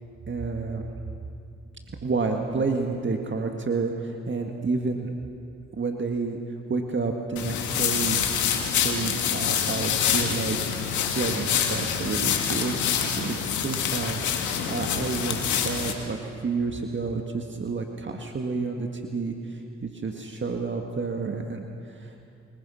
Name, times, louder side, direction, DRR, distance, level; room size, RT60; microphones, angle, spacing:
voice 1, 0.3-0.8 1.9-5.1 5.7-8.2 8.7-22.1, right 4 dB, 40° right, 3 dB, 1.9 m, -30 dB
sound 1, 7.4-15.9, left 8 dB, 80° left, 2.3 m, -26 dB
26.0 x 21.5 x 5.7 m, 2.6 s
supercardioid pair, 55°, 29 cm